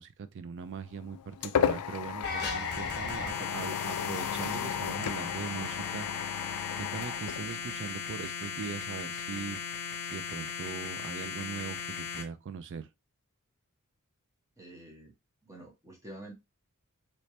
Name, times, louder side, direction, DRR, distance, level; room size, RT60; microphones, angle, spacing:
voice 1, 0.0-9.6 10.0-12.9, right 5 dB, 55° right, 0.4 m, -41 dB
sound 1, 0.7-8.1, left 8 dB, 85° left, 0.3 m, -34 dB
sound 2, 2.2-12.2, left 6 dB, 50° left, 0.9 m, -37 dB
voice 2, 14.6-15.1 15.4-16.3, right 1 dB, 15° right, 1.2 m, -48 dB
3.2 x 3.0 x 2.8 m
head